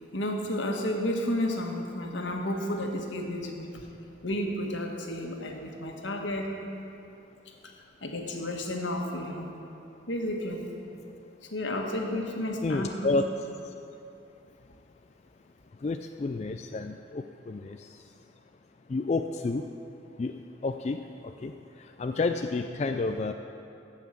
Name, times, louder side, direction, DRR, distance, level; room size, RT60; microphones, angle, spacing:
voice 1, 0.1-3.9 4.2-6.5 7.6-9.5 10.1-10.6 11.5-13.1, left 1 dB, 80° left, 1 dB, 1.5 m, -32 dB
voice 2, 12.6-13.2 15.8-18.0 18.9-19.7 20.2-21.5 22.0-23.3, left 3 dB, 35° left, 6 dB, 0.3 m, -30 dB
16.0 x 5.8 x 7.5 m, 2.8 s
head